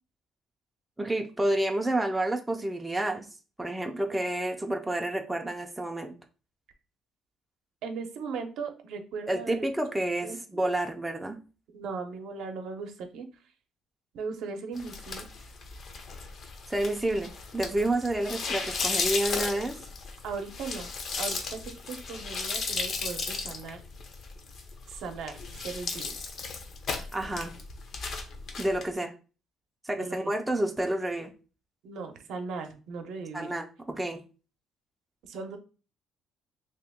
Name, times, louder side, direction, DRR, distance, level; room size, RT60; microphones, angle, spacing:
voice 1, 1.0-3.3 3.6-6.1 9.3-11.4 16.7-19.8 27.1-27.5 28.6-29.1 29.8-31.3 33.3-34.2, right 1 dB, 5° right, 3 dB, 0.4 m, -29 dB
voice 2, 7.8-9.7 10.2-10.6 11.7-13.3 14.1-15.3 20.2-20.9 21.2-23.8 24.9-26.3 29.9-30.3 31.8-33.5 35.2-35.6, right 5 dB, 70° right, 6 dB, 0.6 m, -38 dB
sound 1, 14.8-28.8, left 4 dB, 45° left, 0.6 m, -35 dB
3.0 x 2.9 x 3.5 m, 0.34 s
cardioid pair, 150°, 0 cm